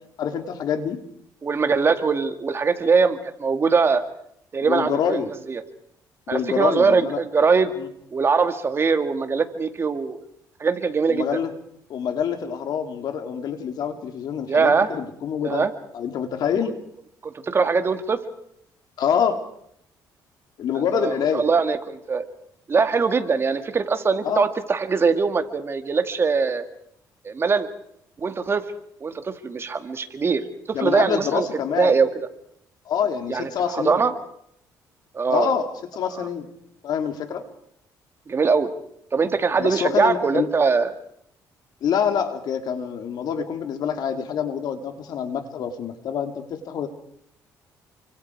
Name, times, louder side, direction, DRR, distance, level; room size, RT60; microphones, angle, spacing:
voice 1, 0.2-1.0 4.7-5.3 6.3-7.2 7.8-7.9 11.1-11.5 11.9-15.6 15.9-16.7 19.0-19.4 20.6-21.5 24.2-24.4 30.7-32.0 32.9-34.0 35.3-36.5 36.8-37.5 39.6-40.5 41.8-46.9, left 7 dB, 65° left, 6 dB, 3.2 m, -26 dB
voice 2, 1.4-4.0 4.5-5.2 5.5-5.6 6.3-7.7 8.1-10.2 10.6-11.3 14.5-14.9 15.4-15.7 17.2-18.2 20.7-22.3 22.7-26.6 27.2-27.7 28.2-28.6 29.0-31.5 31.8-32.1 33.3-34.1 35.1-35.5 36.1-36.3 38.3-38.7 39.1-40.9, right 5 dB, 35° right, 8 dB, 2.2 m, -22 dB
29.5 x 25.0 x 4.8 m, 0.71 s
cardioid pair, 105°, 7 cm